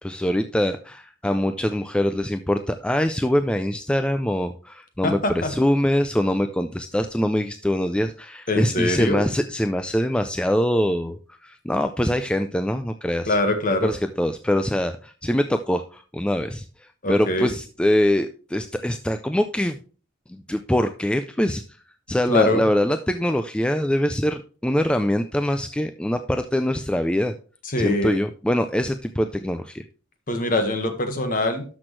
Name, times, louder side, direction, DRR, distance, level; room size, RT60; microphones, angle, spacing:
voice 1, 0.0-13.4 13.8-16.7 17.1-19.8 20.3-21.6 22.1-27.3 27.8-29.8, left 1 dB, 5° left, 8 dB, 0.3 m, -23 dB
voice 2, 5.0-5.5 8.5-9.2 13.3-13.9 17.0-17.5 22.3-22.6 27.6-28.2 30.3-31.6, left 1 dB, 45° left, 6 dB, 1.6 m, -23 dB
12.0 x 6.2 x 3.2 m, 0.39 s
head